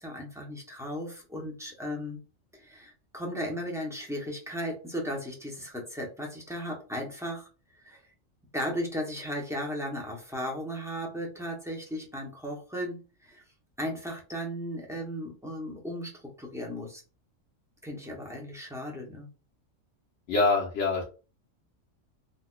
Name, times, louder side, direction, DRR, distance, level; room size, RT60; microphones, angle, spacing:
voice 1, 0.0-2.2 2.5-7.5 7.8-8.0 8.5-13.4 13.8-17.0 17.8-19.3, equal, 5° right, -1 dB, 0.6 m, -36 dB
voice 2, 20.3-21.0, left 3 dB, 70° left, -4 dB, 1.2 m, -24 dB
4.0 x 2.4 x 2.3 m, 0.34 s
omnidirectional pair, 1.3 m